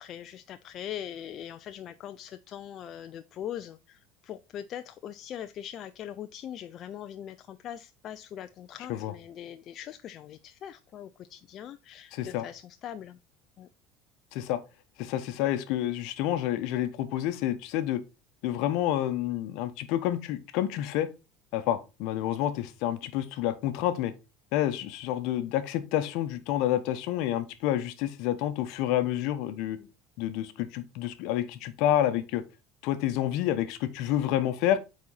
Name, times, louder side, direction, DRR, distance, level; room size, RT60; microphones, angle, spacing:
voice 1, 0.0-13.2 13.6-13.7 29.8-29.9, left 10 dB, 50° left, 0.5 m, -41 dB
voice 2, 12.1-12.4 14.3-14.6 15.0-18.0 18.4-21.1 21.5-24.1 24.5-29.8 30.2-32.4 32.8-34.8, left 12 dB, 70° left, 1.0 m, -29 dB
8.5 x 4.3 x 4.1 m
hypercardioid pair, 85°, 0 cm